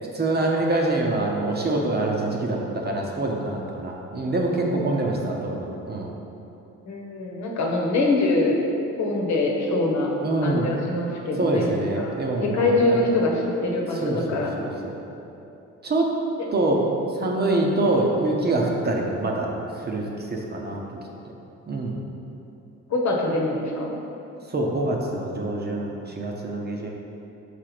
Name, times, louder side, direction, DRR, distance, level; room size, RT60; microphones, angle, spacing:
voice 1, 0.1-6.1 10.2-10.7 11.4-13.0 13.9-15.0 15.8-16.1 16.5-16.8 17.1-20.8 21.7-22.0 24.5-26.9, right 2 dB, 35° right, -1 dB, 0.9 m, -25 dB
voice 2, 6.9-8.6 9.0-10.1 10.4-11.7 12.0-12.1 12.4-14.5 22.9-24.0, left 2 dB, 65° left, -1 dB, 1.1 m, -24 dB
5.0 x 4.0 x 5.9 m, 2.9 s
cardioid pair, 90°, 30 cm